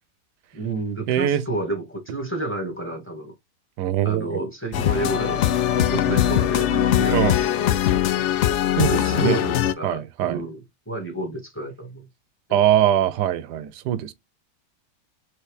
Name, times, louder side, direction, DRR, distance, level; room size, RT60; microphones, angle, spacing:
voice 1, 0.5-3.3 4.0-8.3 8.9-12.1 12.5-12.6, right 1 dB, 5° left, 1.6 m, -31 dB
voice 2, 1.1-1.4 3.8-4.4 7.1-7.4 8.6-9.4 9.8-10.4 12.5-14.1, right 11 dB, 85° right, 1.2 m, -22 dB
sound 1, 4.7-9.7, left 11 dB, 80° left, 0.6 m, -21 dB
4.4 x 3.4 x 3.3 m
omnidirectional pair, 1.8 m